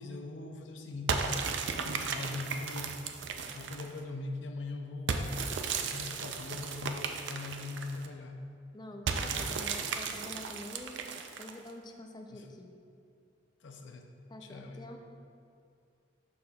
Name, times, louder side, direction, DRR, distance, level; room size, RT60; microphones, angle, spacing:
voice 1, 0.0-5.5 5.8-8.5 9.3-9.6 12.3-12.5 13.6-14.1 14.4-14.9, left 2 dB, 90° left, 4 dB, 0.6 m, -41 dB
sound 1, 1.1-4.0 5.1-8.1 9.1-11.7, right 5 dB, 75° right, 0.4 m, -35 dB
voice 2, 8.7-11.0 11.4-12.7 14.3-15.0, left 1 dB, 25° left, 3 dB, 0.5 m, -47 dB
11.5 x 4.2 x 2.3 m, 2.5 s
head